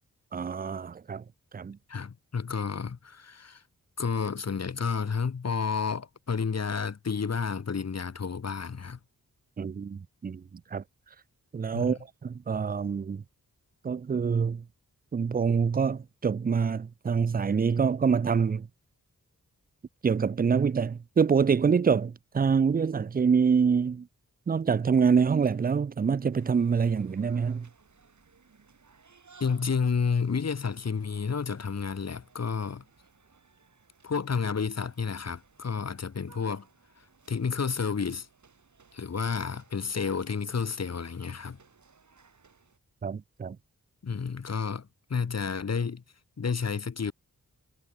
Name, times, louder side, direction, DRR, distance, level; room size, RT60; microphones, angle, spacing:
voice 1, 0.3-1.2 1.5-1.8 9.6-10.4 10.7-10.8 11.5-13.2 13.8-14.6 15.1-18.7 20.0-24.1 24.5-27.7 43.0-43.6, right 6 dB, 30° right, 0.4 m, -26 dB
voice 2, 1.9-3.6 4.0-9.0 11.7-12.0 29.4-32.8 34.0-36.6 37.3-38.3 38.9-41.6 44.0-46.0 46.4-47.1, left 5 dB, 50° left, 1.6 m, -30 dB
sound 1, 26.3-42.8, right 5 dB, 60° right, 7.2 m, -60 dB
wide cardioid pair, 110°, 33 cm